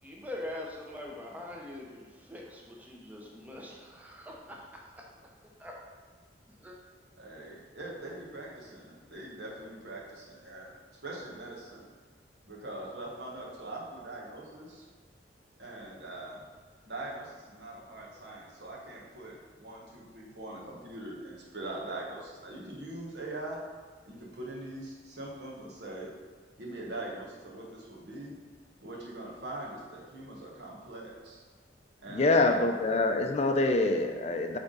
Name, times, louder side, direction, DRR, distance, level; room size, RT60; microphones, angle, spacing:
voice 1, 0.0-4.6 5.6-5.8 6.6-6.8, left 1 dB, 10° right, -2 dB, 0.7 m, -43 dB
voice 2, 7.1-10.7 11.0-11.9 12.4-14.8 15.6-16.4 16.9-23.6 24.0-26.1 26.6-28.4 28.8-31.4 32.0-32.5, right 2 dB, 75° right, -3 dB, 1.4 m, -42 dB
voice 3, 32.1-34.6, left 2 dB, 35° left, 5 dB, 0.4 m, -25 dB
7.8 x 3.5 x 3.9 m, 1.5 s
head